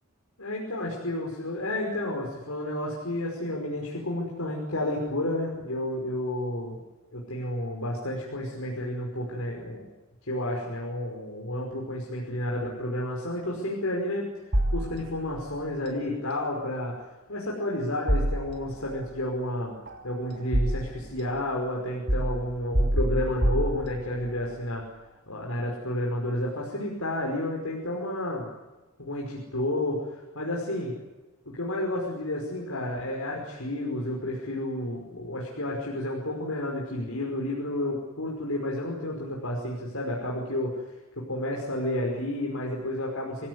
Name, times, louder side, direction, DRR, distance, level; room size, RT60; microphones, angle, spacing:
voice 1, 0.4-6.8 7.1-9.9 10.3-14.3 14.7-16.9 17.3-19.7 20.0-24.8 25.3-28.5 29.0-30.9 31.5-40.8 41.2-43.5, left 1 dB, 80° left, -1 dB, 5.4 m, -31 dB
sound 1, 14.5-15.4 18.1-19.0 19.9-21.2 22.1-24.3, right 1 dB, 50° right, 2.9 m, -27 dB
27.0 x 17.0 x 9.7 m, 1.1 s
head